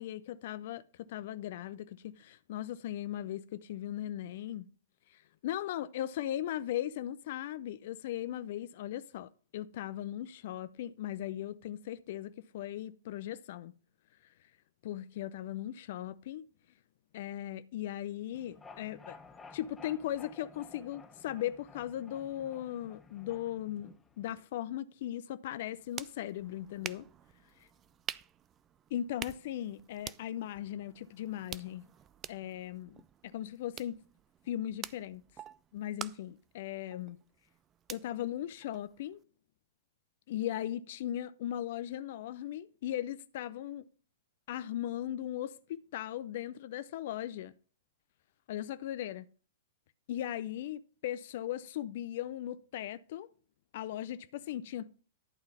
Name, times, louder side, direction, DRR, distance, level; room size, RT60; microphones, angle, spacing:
voice 1, 0.0-4.7 5.1-13.7 14.8-16.5 17.1-19.2 19.5-27.1 28.9-31.8 32.3-34.0 34.5-35.2 35.7-37.2 37.9-39.2 40.3-43.8 44.5-47.5 48.5-49.2 50.1-53.3 53.7-54.9, left 12 dB, 55° left, 0.4 m, -38 dB
sound 1, 18.3-24.4, left 4 dB, 10° left, 0.9 m, -54 dB
sound 2, 25.5-39.2, right 9 dB, 25° right, 0.3 m, -48 dB
11.5 x 3.8 x 7.1 m
hypercardioid pair, 110°, 0 cm